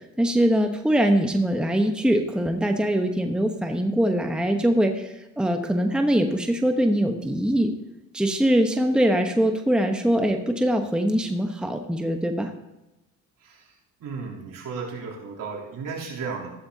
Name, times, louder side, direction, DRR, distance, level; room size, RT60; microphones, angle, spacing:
voice 1, 0.0-7.7 8.1-12.5, equal, ahead, 5 dB, 1.0 m, -22 dB
voice 2, 14.0-16.5, right 5 dB, 60° right, -3 dB, 3.3 m, -34 dB
14.0 x 11.5 x 2.8 m, 0.97 s
supercardioid pair, 65°, 37 cm